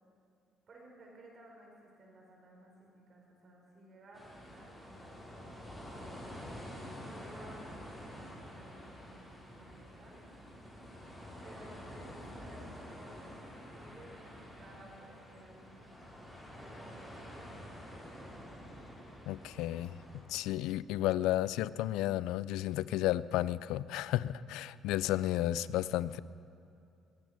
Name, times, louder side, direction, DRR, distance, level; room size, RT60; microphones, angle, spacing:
voice 1, 0.7-6.2 7.0-7.7 8.0-10.2 11.4-13.3 13.7-16.0 16.5-18.5, right 1 dB, 45° right, -1 dB, 5.2 m, -56 dB
sound 1, 4.1-20.2, equal, ahead, 4.8 m, -48 dB
voice 2, 19.3-19.9 20.3-26.2, left 14 dB, 90° left, 18 dB, 0.3 m, -32 dB
21.5 x 9.3 x 6.7 m, 2.5 s
cardioid pair, 105°, 0 cm